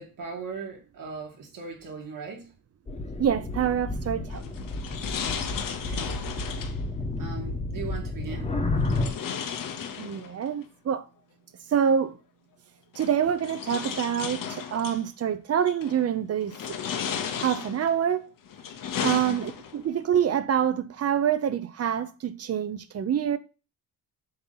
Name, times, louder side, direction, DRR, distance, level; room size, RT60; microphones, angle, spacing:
voice 1, 0.0-2.5 5.7-6.1 7.2-8.6 19.0-19.4, right 5 dB, 60° right, 2.1 m, -39 dB
sound 1, 2.9-9.1, left 2 dB, 20° left, 0.9 m, -31 dB
voice 2, 3.2-4.5 10.0-11.1 11.7-12.2 12.9-16.8 17.4-18.3 19.0-23.4, right 8 dB, 40° right, 0.6 m, -26 dB
sound 2, 4.3-6.8 8.8-10.5 11.9-12.0 12.9-15.0 15.7-16.0 16.5-18.0 18.5-19.9, left 7 dB, 60° left, 0.8 m, -34 dB
7.7 x 2.9 x 5.5 m
wide cardioid pair, 175°, 37 cm